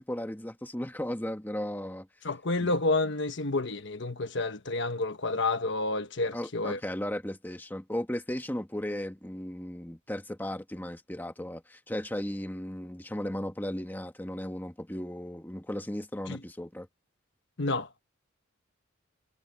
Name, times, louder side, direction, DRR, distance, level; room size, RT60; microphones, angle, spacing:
voice 1, 0.0-2.1 2.6-2.7 6.3-16.9, left 1 dB, 10° left, 1.6 m, -36 dB
voice 2, 2.2-6.8 16.3-16.4 17.6-18.0, left 2 dB, 60° left, 1.1 m, -29 dB
head